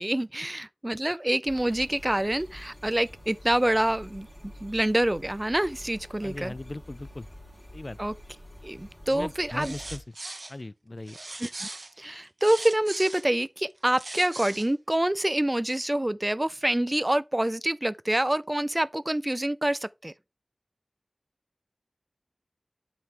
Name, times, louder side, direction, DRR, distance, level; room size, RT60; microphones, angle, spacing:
voice 1, 0.0-6.5 8.0-8.1 8.6-9.7 11.4-11.7 12.0-20.1, right 1 dB, 30° right, 0.4 m, -26 dB
sound 1, 1.5-10.0, equal, 20° left, 4.3 m, -47 dB
voice 2, 6.2-7.3 7.7-8.0 9.1-10.0 10.5-11.2, left 2 dB, 55° left, 0.3 m, -38 dB
sound 2, 9.5-10.5 11.1-13.3 13.8-14.7, right 2 dB, 80° right, 0.8 m, -39 dB
7.7 x 5.7 x 3.3 m
wide cardioid pair, 45°, 0 cm